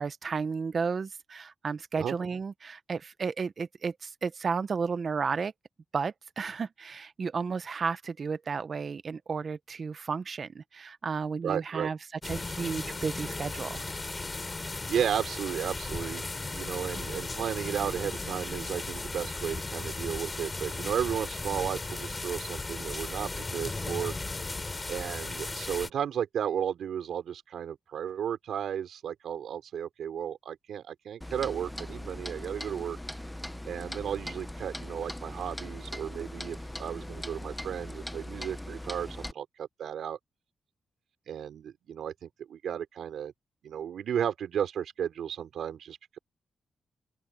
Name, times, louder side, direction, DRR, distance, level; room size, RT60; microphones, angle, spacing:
voice 1, 0.0-5.5 5.9-12.0 12.2-13.8, right 5 dB, 50° right, 1.1 m, -33 dB
voice 2, 11.4-11.9 14.9-24.2 24.9-33.0 33.7-40.2 41.3-43.3 43.6-46.2, right 9 dB, 85° right, 4.4 m, -34 dB
sound 1, 12.2-25.9, left 3 dB, 25° left, 3.5 m, -36 dB
Clock, 31.2-39.3, left 1 dB, 10° left, 1.0 m, -40 dB
open air
cardioid pair, 90°, 0 cm